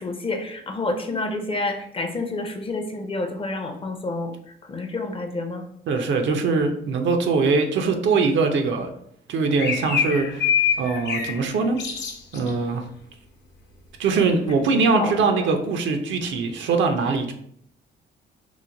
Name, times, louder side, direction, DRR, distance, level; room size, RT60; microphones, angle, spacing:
voice 1, 0.0-4.3 4.7-5.6 14.9-15.1 15.4-15.5, left 2 dB, 25° left, 5 dB, 0.5 m, -28 dB
voice 2, 5.9-8.9 9.3-10.5 10.8-11.8 12.3-12.9 14.0-17.3, right 4 dB, 70° right, 5 dB, 0.5 m, -22 dB
sound 1, 9.6-11.4 11.8-12.5, left 7 dB, 65° left, 0.7 m, -24 dB
3.0 x 2.1 x 3.7 m, 0.69 s
cardioid pair, 90°, 20 cm